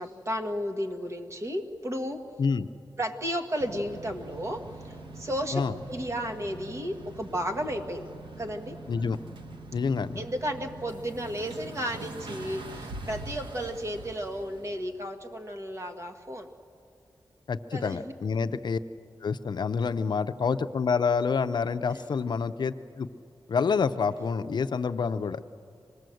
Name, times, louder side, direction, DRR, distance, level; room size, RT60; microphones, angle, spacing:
voice 1, 0.0-2.2 3.0-5.6 5.9-8.1 8.4-8.8 10.1-16.5 17.7-18.1 21.9-22.0, equal, 35° right, 5 dB, 1.6 m, -33 dB
sound 1, 3.6-15.0, right 2 dB, 80° right, 1.3 m, -43 dB
voice 2, 9.7-10.2 17.5-18.8 19.2-23.1 23.5-25.4, left 5 dB, 60° left, 11 dB, 0.6 m, -27 dB
25.5 x 20.0 x 7.8 m, 2.6 s
wide cardioid pair, 135°, 8 cm